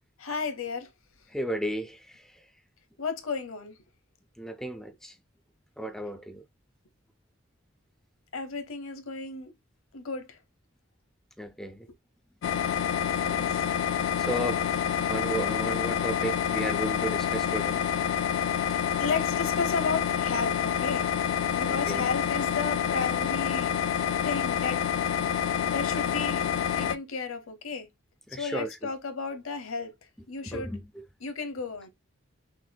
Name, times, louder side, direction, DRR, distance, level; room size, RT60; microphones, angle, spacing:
voice 1, 0.2-0.9 3.0-3.8 8.3-9.5 9.9-10.4 13.2-13.6 19.0-21.1 21.6-23.8 24.2-24.8 25.7-26.5 26.8-27.9 28.3-29.9 30.3-30.7 31.2-31.9, left 4 dB, 80° left, 0.9 m, -33 dB
voice 2, 1.3-2.4 4.4-5.2 5.8-6.4 11.4-11.9 13.3-13.4 13.9-14.8 15.1-17.8 21.7-22.1 28.3-28.8 30.4-31.0, right 1 dB, ahead, 0.5 m, -34 dB
sound 1, 12.4-27.0, left 8 dB, 65° left, 0.3 m, -28 dB
6.1 x 2.6 x 2.2 m
head